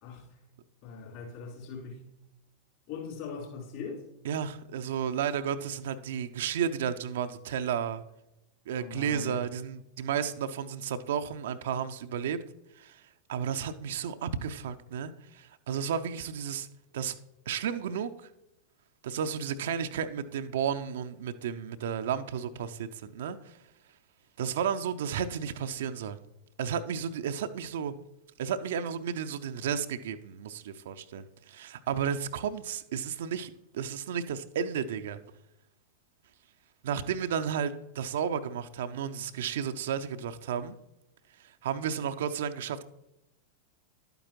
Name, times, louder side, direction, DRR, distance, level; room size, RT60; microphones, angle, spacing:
voice 1, 0.8-2.0 2.9-4.1 8.7-9.5, left 5 dB, 50° left, 4.1 m, -40 dB
voice 2, 4.2-8.0 8.7-12.4 12.8-13.0 13.3-16.7 16.9-17.1 17.5-18.3 19.0-23.6 24.4-26.2 26.6-27.9 28.4-35.2 36.8-40.8 41.4-42.8, right 8 dB, 60° right, 0.6 m, -33 dB
11.5 x 9.0 x 3.0 m
figure-of-eight pair, 90°, 0 cm